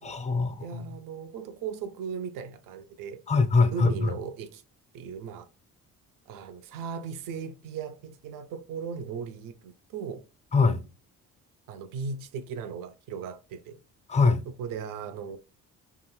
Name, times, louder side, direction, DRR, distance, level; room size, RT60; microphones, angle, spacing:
voice 1, 0.0-0.6 3.3-4.1 10.5-10.8 14.1-14.4, left 4 dB, 20° left, 0.4 m, -22 dB
voice 2, 0.6-3.2 3.7-4.6 4.9-5.5 6.3-10.2 11.7-13.8 14.6-15.4, right 6 dB, 65° right, 0.5 m, -37 dB
2.6 x 2.4 x 3.0 m
supercardioid pair, 70°, 35 cm